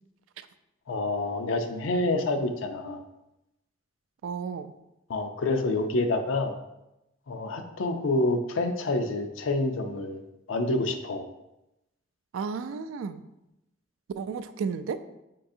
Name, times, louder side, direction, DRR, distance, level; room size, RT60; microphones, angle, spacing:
voice 1, 0.9-3.0 5.1-6.5 7.3-10.2 10.5-11.2, left 2 dB, 85° left, 6 dB, 0.5 m, -27 dB
voice 2, 4.2-4.7 12.3-13.2 14.2-15.0, right 5 dB, 85° right, 10 dB, 0.3 m, -33 dB
4.8 x 3.7 x 2.6 m, 0.91 s
head